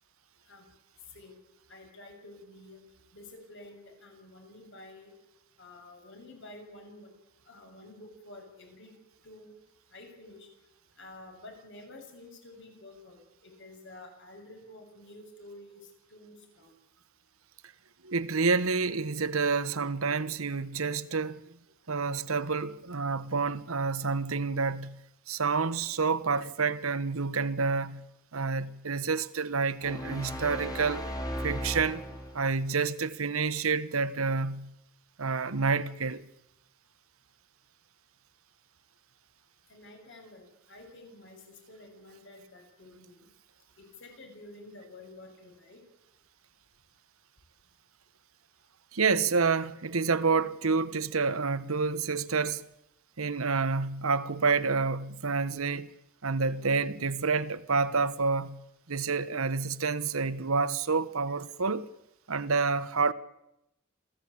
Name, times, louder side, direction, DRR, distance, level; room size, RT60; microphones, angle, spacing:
voice 1, 1.7-2.8 3.1-5.1 5.6-7.1 7.5-8.9 9.2-9.5 9.9-10.5 11.0-16.7 39.7-43.3 43.8-45.8, left 2 dB, 60° left, 7.2 m, -50 dB
voice 2, 18.0-21.4 21.9-25.0 25.3-28.0 28.3-31.1 31.4-32.0 32.3-34.7 35.2-36.2 48.9-52.6 53.2-55.9 56.2-58.6 58.9-61.9 62.3-63.1, right 4 dB, 85° right, 1.1 m, -28 dB
sound 1, 29.8-32.6, equal, 20° left, 3.1 m, -36 dB
28.0 x 16.0 x 8.6 m
head